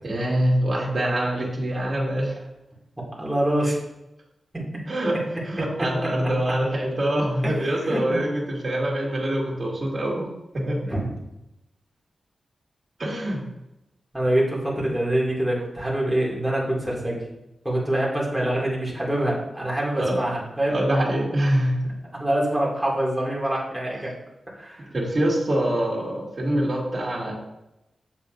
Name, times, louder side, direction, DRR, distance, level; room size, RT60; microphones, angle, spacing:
voice 1, 0.0-2.4 4.9-5.2 5.5-10.3 10.5-10.9 13.0-13.4 19.9-20.2 20.7-21.9 24.9-27.3, right 1 dB, 40° right, -3 dB, 2.1 m, -24 dB
voice 2, 3.2-3.8 4.5-4.6 5.8-5.9 7.4-8.2 10.9-11.1 14.1-17.2 17.6-20.8 22.2-24.1 24.5-24.9, right 1 dB, 5° right, -4 dB, 2.3 m, -25 dB
7.5 x 6.9 x 2.6 m, 0.89 s
wide cardioid pair, 120°, 0 cm